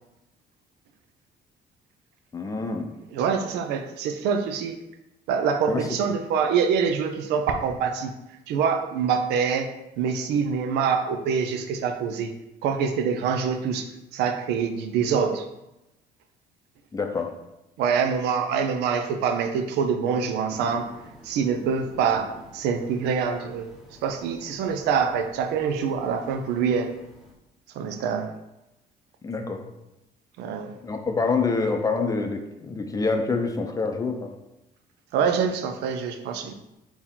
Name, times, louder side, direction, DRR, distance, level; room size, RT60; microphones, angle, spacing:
voice 1, 2.3-2.9 5.7-6.0 16.9-17.3 29.2-29.7 30.8-34.3, left 4 dB, 20° left, 5 dB, 0.6 m, -26 dB
voice 2, 3.1-4.8 5.3-8.1 8.5-9.7 10.0-12.3 12.6-13.9 14.1-15.5 17.8-20.9 21.2-23.7 24.0-26.9 27.7-28.3 30.4-30.7 35.1-36.5, right 6 dB, 85° right, 7 dB, 0.5 m, -25 dB
sound 1, 20.5-27.3, equal, ahead, 0.9 m, -48 dB
4.4 x 2.9 x 3.6 m, 0.92 s
cardioid pair, 110°, 17 cm